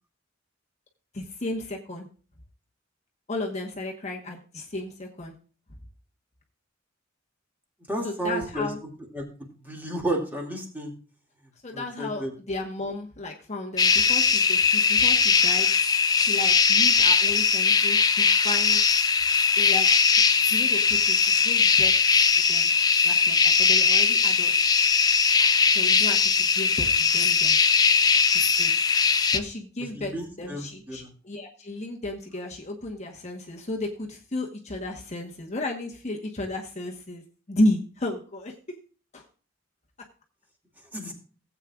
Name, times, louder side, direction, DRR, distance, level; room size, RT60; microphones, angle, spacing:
voice 1, 1.1-2.1 3.3-5.3 8.0-8.8 11.6-15.7 16.1-18.8 19.6-20.2 20.5-21.9 22.3-22.7 23.0-24.5 25.7-27.6 28.3-28.8 29.3-38.8 39.1-39.2, left 1 dB, 35° left, 1 dB, 1.1 m, -33 dB
voice 2, 7.9-8.7 9.1-10.9 11.7-12.3 29.9-31.1 40.9-41.1, right 1 dB, 10° right, 0 dB, 2.2 m, -32 dB
sound 1, 13.8-29.4, left 5 dB, 20° left, 0.5 m, -20 dB
17.0 x 8.2 x 2.4 m, 0.38 s
head